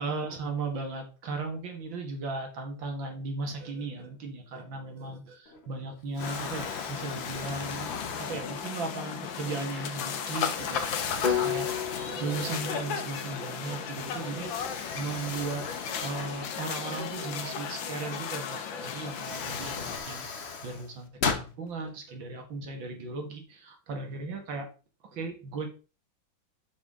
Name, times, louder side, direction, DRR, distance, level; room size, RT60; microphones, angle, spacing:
voice 1, 0.0-15.6 16.0-20.3 20.6-21.1 21.4-24.7 25.1-25.7, right 3 dB, 75° right, 4 dB, 2.6 m, -36 dB
Explosion, 5.5-5.8 6.2-9.0 9.6-9.8 10.5-12.7 13.1-13.2 14.4-17.1 18.5-18.6 19.0-21.5, left 5 dB, 40° left, 1.1 m, -38 dB
sound 1, 6.2-20.0, left 7 dB, 75° left, 1.8 m, -35 dB
sound 2, 11.2-15.3, left 8 dB, 25° left, 1.4 m, -35 dB
7.3 x 7.0 x 3.7 m, 0.33 s
omnidirectional pair, 2.1 m